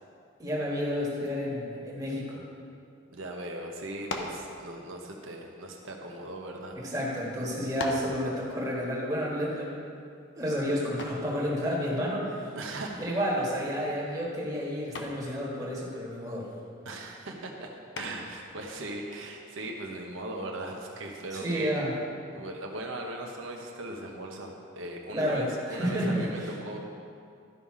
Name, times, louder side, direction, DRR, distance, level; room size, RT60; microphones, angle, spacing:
voice 1, 0.4-2.4 6.7-9.7 10.4-12.4 13.0-16.5 21.3-22.0 25.1-26.5, equal, 15° right, -5 dB, 1.5 m, -30 dB
voice 2, 3.1-6.8 12.6-13.1 16.8-17.7 18.0-21.7 22.3-26.8, right 1 dB, 80° right, 0 dB, 1.0 m, -39 dB
sound 1, 4.1-4.5 5.4-6.6 7.2-7.3 7.8-8.2 11.0-11.3 13.2-13.6 14.0-14.3 14.9-15.3 17.9-18.4, left 2 dB, 60° left, 0.8 m, -38 dB
12.5 x 5.6 x 4.9 m, 2.4 s
head